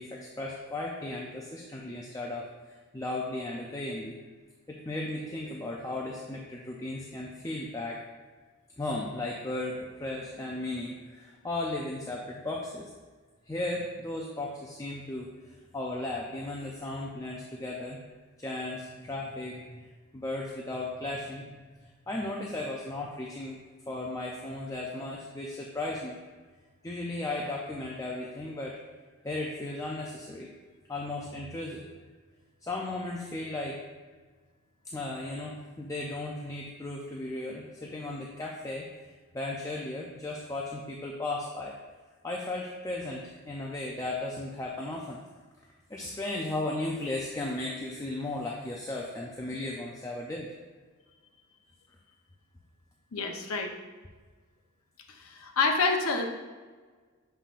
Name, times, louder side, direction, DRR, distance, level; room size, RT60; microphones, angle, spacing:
voice 1, 0.0-4.2 4.7-8.0 8.8-12.9 13.5-18.0 18.4-19.9 20.1-23.6 23.9-26.2 26.8-28.8 29.2-30.5 30.9-31.9 32.6-33.8 34.8-41.8 42.2-45.2 45.9-50.5, left 2 dB, 15° left, -2 dB, 0.4 m, -36 dB
voice 2, 53.1-53.7 55.1-56.3, left 4 dB, 75° left, 3 dB, 0.7 m, -28 dB
6.9 x 5.6 x 2.5 m, 1.4 s
head